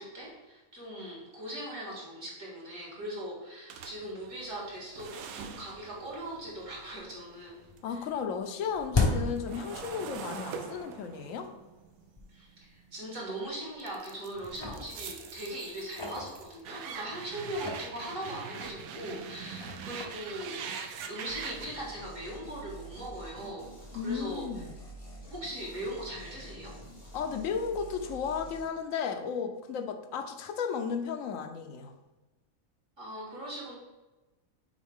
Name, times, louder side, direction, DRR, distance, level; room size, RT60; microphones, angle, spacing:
voice 1, 0.0-7.7 7.9-8.0 12.3-23.8 24.0-24.5 25.3-26.8 33.0-33.7, right 1 dB, 65° right, -4 dB, 2.3 m, -40 dB
sound 1, 3.7-8.0 8.3-13.2 13.8-21.8, right 6 dB, 85° right, 1.0 m, -43 dB
sound 2, 6.1-6.2 6.6-7.2 7.5-10.4 10.7-10.8 11.5-11.6 12.2-12.3 12.6-12.8 13.5-14.0 14.3-16.9 17.4-21.3, left 3 dB, 30° left, 0.5 m, -36 dB
voice 2, 7.8-11.5 23.9-24.7 27.1-31.9, left 6 dB, 70° left, 7 dB, 1.0 m, -34 dB
sound 3, 21.3-28.7, right 1 dB, 90° left, 2.6 m, -48 dB
6.3 x 4.2 x 3.6 m, 1.1 s
omnidirectional pair, 1.5 m